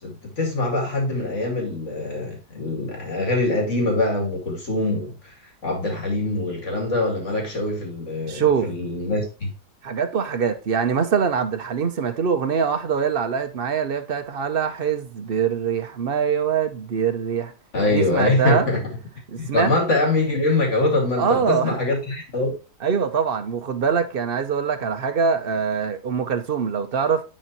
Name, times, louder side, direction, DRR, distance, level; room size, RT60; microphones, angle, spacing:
voice 1, 0.0-5.3 5.6-9.5 17.7-18.8 19.4-22.5, left 2 dB, 45° left, 2.6 m, -23 dB
voice 2, 8.3-8.7 9.8-17.5 17.9-18.7 19.3-19.7 21.1-21.8 22.8-27.2, right 6 dB, 50° right, 0.7 m, -23 dB
10.5 x 4.3 x 2.7 m
omnidirectional pair, 1.8 m